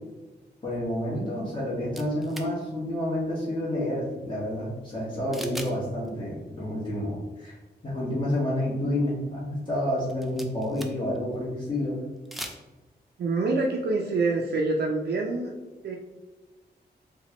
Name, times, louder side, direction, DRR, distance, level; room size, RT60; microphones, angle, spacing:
voice 1, 0.6-7.6 7.8-12.0, left 1 dB, 30° left, -8 dB, 1.1 m, -29 dB
sound 1, 1.9-2.5 5.3-5.8 6.1-6.2 10.0-11.2 12.2-12.6, equal, ahead, 0.4 m, -39 dB
voice 2, 13.2-15.5 15.8-16.0, right 3 dB, 70° right, 0 dB, 0.4 m, -26 dB
4.1 x 2.2 x 2.9 m, 1.2 s
cardioid pair, 85°, 17 cm